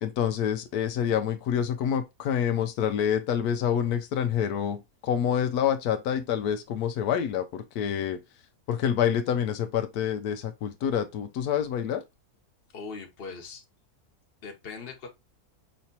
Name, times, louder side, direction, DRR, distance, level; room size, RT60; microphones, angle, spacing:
voice 1, 0.0-8.2 8.7-12.0, left 9 dB, 80° left, 1.1 m, -27 dB
voice 2, 12.7-13.6 14.4-15.1, left 4 dB, 45° left, 1.1 m, -40 dB
5.6 x 3.0 x 2.7 m
omnidirectional pair, 1.6 m